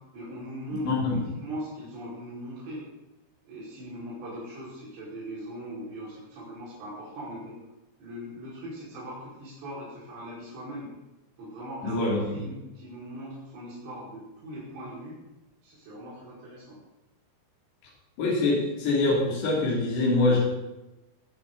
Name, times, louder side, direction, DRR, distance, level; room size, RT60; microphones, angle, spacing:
voice 1, 0.1-2.8 3.4-7.6 8.0-10.9 11.4-15.2 15.6-16.8, equal, 80° right, -8 dB, 7.7 m, -40 dB
voice 2, 0.9-1.2 11.8-12.5 18.2-20.4, left 2 dB, 75° left, -5 dB, 5.3 m, -24 dB
20.5 x 11.5 x 4.1 m, 1.0 s
omnidirectional pair, 4.9 m